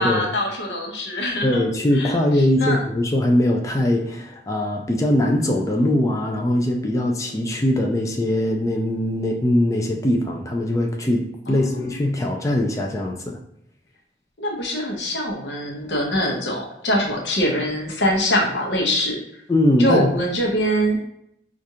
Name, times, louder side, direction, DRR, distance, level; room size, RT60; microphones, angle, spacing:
voice 1, 0.0-1.6 1.9-2.2 2.6-2.8 11.5-11.9 14.4-19.2 19.8-21.0, equal, 80° left, 0 dB, 0.8 m, -23 dB
voice 2, 1.4-13.4 19.5-20.1, left 1 dB, 20° left, 1 dB, 0.3 m, -21 dB
4.7 x 2.4 x 2.7 m, 0.74 s
head